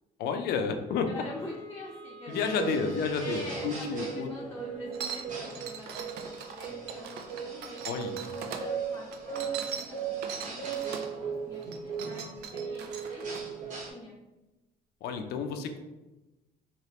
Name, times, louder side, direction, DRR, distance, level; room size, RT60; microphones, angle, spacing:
voice 1, 0.2-1.2 2.3-4.3 7.9-8.2 15.0-15.8, left 6 dB, 75° left, 6 dB, 0.5 m, -31 dB
Wind instrument woodwind instrument, 1.0-13.2, equal, 90° right, 1.2 m, -53 dB
voice 2, 1.1-2.9 3.2-8.0 8.4-12.2 12.5-13.4 13.6-14.1, left 1 dB, 15° left, -5 dB, 0.6 m, -45 dB
sound 1, 2.3-13.9, right 6 dB, 50° right, 1.0 m, -37 dB
sound 2, 4.9-8.6 9.1-11.1 11.6-13.4, right 7 dB, 70° right, 0.4 m, -40 dB
3.1 x 2.9 x 2.9 m, 1.1 s
cardioid pair, 110°, 17 cm